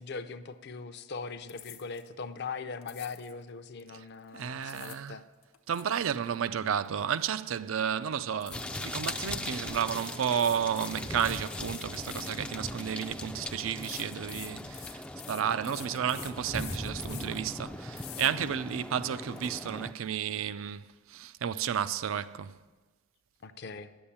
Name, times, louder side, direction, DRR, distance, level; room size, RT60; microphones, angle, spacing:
voice 1, 0.0-5.2 18.4-18.5 23.4-23.9, left 4 dB, 50° left, 0.5 m, -40 dB
sound 1, 1.5-2.1 2.8-3.4 4.4-5.1 5.4-7.3 7.6-7.8 8.4-9.1 9.8-13.0 13.8-17.5 18.0-18.3 18.8-18.9 19.2-19.5, left 12 dB, 85° left, 0.9 m, -47 dB
voice 2, 4.3-5.2 5.7-22.6, right 8 dB, 65° right, 0.4 m, -32 dB
sound 2, 8.5-19.9, left 1 dB, 5° left, 0.3 m, -39 dB
10.5 x 7.1 x 8.5 m
head